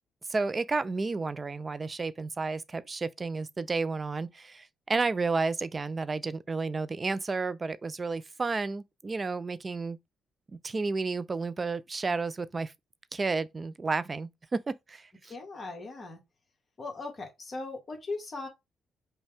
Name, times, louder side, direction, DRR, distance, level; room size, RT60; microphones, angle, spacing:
voice 1, 0.3-10.0 10.6-12.7 13.1-15.1, right 3 dB, 30° right, 0.4 m, -31 dB
voice 2, 15.2-16.2 16.8-18.5, left 3 dB, 40° left, 1.5 m, -38 dB
5.3 x 2.2 x 3.4 m
cardioid pair, 90°, 0 cm